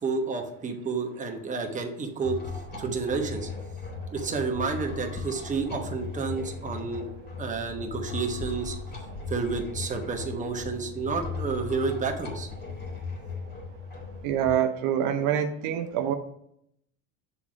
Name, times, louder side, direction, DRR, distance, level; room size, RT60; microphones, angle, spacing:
voice 1, 0.0-2.4 2.8-3.5 4.1-7.1 7.4-8.8 9.3-12.5, right 4 dB, 20° right, 3 dB, 1.0 m, -30 dB
sound 1, 2.2-14.5, left 4 dB, 25° left, 2.2 m, -37 dB
voice 2, 14.2-16.1, right 9 dB, 70° right, 7 dB, 0.7 m, -25 dB
6.9 x 3.6 x 5.0 m, 0.74 s
supercardioid pair, 110°, 36 cm